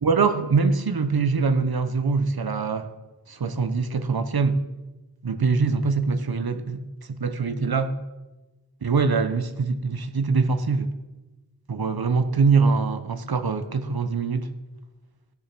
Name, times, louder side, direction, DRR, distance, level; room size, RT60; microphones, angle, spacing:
voice 1, 0.0-2.9 3.3-4.6 5.2-6.8 7.1-8.0 8.8-10.9 11.7-14.5, right 4 dB, 75° right, 9 dB, 1.1 m, -23 dB
16.0 x 7.0 x 6.2 m, 1.1 s
wide cardioid pair, 45°, 37 cm